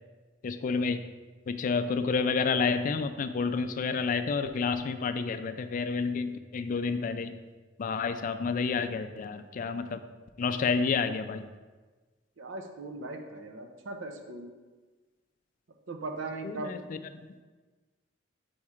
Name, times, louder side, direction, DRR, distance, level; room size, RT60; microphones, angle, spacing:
voice 1, 0.4-1.1 1.5-7.3 7.8-10.0 10.4-11.4 16.4-17.0, left 5 dB, 45° left, 10 dB, 0.3 m, -29 dB
voice 2, 12.4-14.5 15.9-16.7, right 2 dB, 85° right, 4 dB, 0.7 m, -39 dB
4.7 x 4.3 x 4.9 m, 1.3 s
head